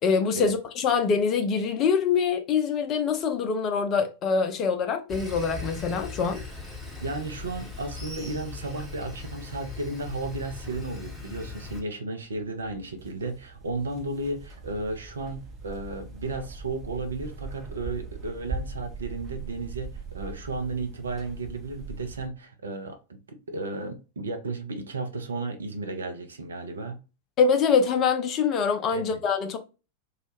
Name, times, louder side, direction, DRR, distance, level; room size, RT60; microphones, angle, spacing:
voice 1, 0.0-6.4 27.4-29.6, left 5 dB, 35° left, 0.5 m, -24 dB
Sawing, 5.1-11.8, left 3 dB, ahead, 0.9 m, -39 dB
voice 2, 7.0-23.0 23.3-27.0 28.9-29.2, right 3 dB, 70° right, 0.5 m, -34 dB
sound 1, 12.2-22.3, right 4 dB, 25° right, 0.6 m, -40 dB
2.3 x 2.1 x 3.1 m
figure-of-eight pair, 90°, 0 cm